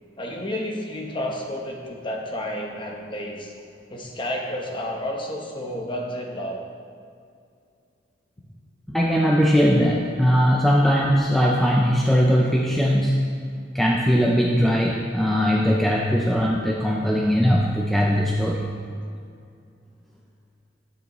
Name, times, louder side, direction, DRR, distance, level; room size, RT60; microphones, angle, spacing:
voice 1, 0.2-3.5 3.9-6.6, left 1 dB, 25° left, 0 dB, 1.0 m, -31 dB
voice 2, 8.9-13.3 13.7-18.7, equal, ahead, -2 dB, 0.5 m, -20 dB
9.4 x 7.9 x 3.1 m, 2.3 s
head